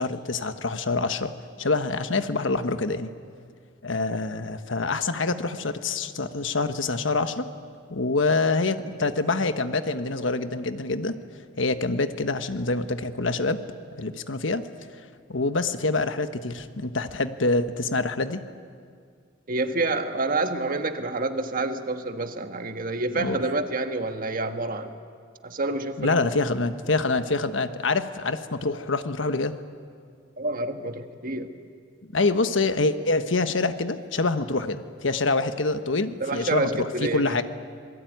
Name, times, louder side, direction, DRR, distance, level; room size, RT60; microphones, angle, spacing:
voice 1, 0.0-3.1 3.8-7.5 7.9-11.2 11.6-13.6 14.0-14.6 15.3-18.4 23.2-23.4 26.0-29.6 32.1-37.4, left 3 dB, 80° left, 9 dB, 1.3 m, -26 dB
voice 2, 19.5-25.0 25.4-26.2 30.4-31.5 36.2-37.4, right 2 dB, 45° right, 7 dB, 1.5 m, -28 dB
26.5 x 20.5 x 9.4 m, 2.1 s
head